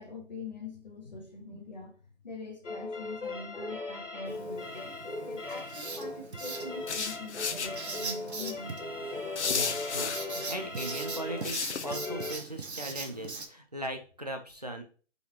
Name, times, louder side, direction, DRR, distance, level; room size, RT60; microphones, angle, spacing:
voice 1, 0.0-2.0 2.2-4.9 5.2-8.8, left 3 dB, 35° left, 0 dB, 1.3 m, -44 dB
sound 1, 2.6-12.4, left 3 dB, 80° left, 1.6 m, -38 dB
Writing, 4.2-13.5, right 4 dB, 60° right, 0.9 m, -41 dB
sound 2, 6.9-7.7 9.4-10.2 11.4-11.9, left 5 dB, 65° left, 0.7 m, -32 dB
voice 2, 9.4-14.8, right 1 dB, 35° right, 4 dB, 0.5 m, -39 dB
4.6 x 4.0 x 2.8 m, 0.39 s
hypercardioid pair, 175°, 36 cm